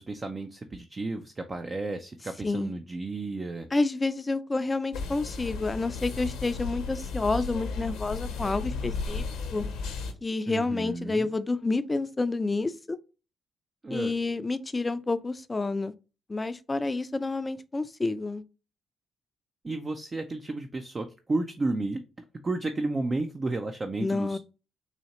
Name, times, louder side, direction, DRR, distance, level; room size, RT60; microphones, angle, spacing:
voice 1, 0.0-3.7 10.5-11.3 13.8-14.1 19.6-22.0 22.4-24.4, right 2 dB, 35° right, 0.5 m, -32 dB
voice 2, 3.7-9.2 9.5-9.6 10.2-13.0 13.9-15.9 16.3-18.4 24.0-24.4, left 3 dB, 25° left, 0.4 m, -29 dB
sound 1, 4.9-10.1, left 4 dB, 75° left, 0.8 m, -34 dB
4.2 x 2.8 x 2.9 m
hypercardioid pair, 50°, 0 cm